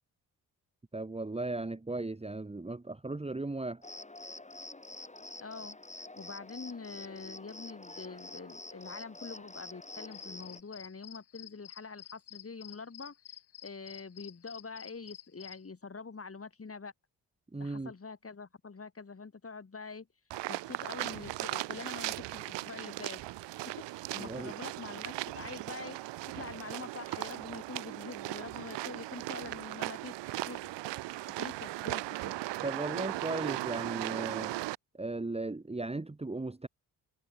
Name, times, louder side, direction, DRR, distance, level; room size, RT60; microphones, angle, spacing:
voice 1, 0.9-3.8 17.5-17.9 24.2-24.5 32.6-34.5 34.9-36.7, right 2 dB, 15° right, 1.6 m, -36 dB
Cricket, 3.8-10.6, left 2 dB, 15° left, 3.9 m, -47 dB
voice 2, 5.4-5.8 6.2-13.1 13.6-16.9 17.6-20.1 20.5-23.2 23.9-26.0 26.3-30.7 31.3-32.4, left 4 dB, 30° left, 4.3 m, -45 dB
sound 1, 9.9-15.6, left 11 dB, 65° left, 2.5 m, -50 dB
sound 2, 20.3-34.8, right 17 dB, 80° right, 1.5 m, -38 dB
supercardioid pair, 55°, 42 cm